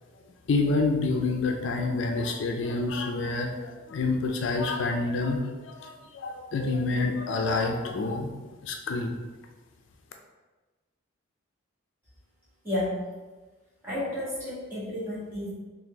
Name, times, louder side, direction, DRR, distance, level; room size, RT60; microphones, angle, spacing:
voice 1, 0.5-8.3 8.6-9.2, left 3 dB, 65° left, 3 dB, 0.4 m, -28 dB
voice 2, 12.6-13.1 13.8-15.5, left 1 dB, 10° right, -10 dB, 1.4 m, -31 dB
4.1 x 2.6 x 3.3 m, 1.2 s
head